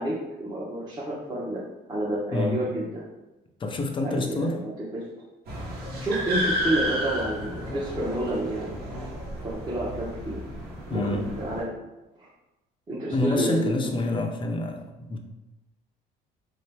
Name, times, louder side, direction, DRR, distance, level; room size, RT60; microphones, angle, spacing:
voice 1, 0.0-1.6 1.9-3.0 4.0-5.0 5.7-8.9 9.4-10.4 10.9-11.7 12.2-12.3 12.9-13.9, right 1 dB, 25° right, -8 dB, 0.8 m, -30 dB
voice 2, 3.6-4.6 10.9-11.2 13.1-15.2, left 2 dB, 30° left, 4 dB, 0.5 m, -27 dB
sound 1, 5.5-11.6, equal, 70° right, 1.2 m, -32 dB
3.7 x 2.8 x 3.4 m, 1.0 s
cardioid pair, 110°, 17 cm